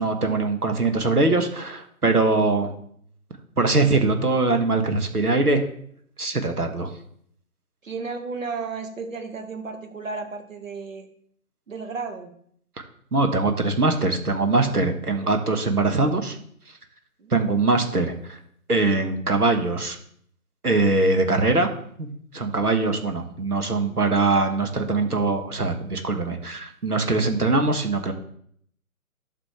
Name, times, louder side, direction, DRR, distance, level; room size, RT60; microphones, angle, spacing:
voice 1, 0.0-2.7 3.6-5.6 6.2-6.9 13.1-16.4 17.3-18.4 18.7-20.0 20.6-21.7 22.0-22.1 22.3-28.1, right 3 dB, 75° right, 6 dB, 1.8 m, -22 dB
voice 2, 7.8-11.1 11.7-12.3 17.2-17.3, right 4 dB, 55° right, 6 dB, 1.9 m, -33 dB
11.5 x 6.9 x 3.3 m, 0.64 s
figure-of-eight pair, 140°, 45 cm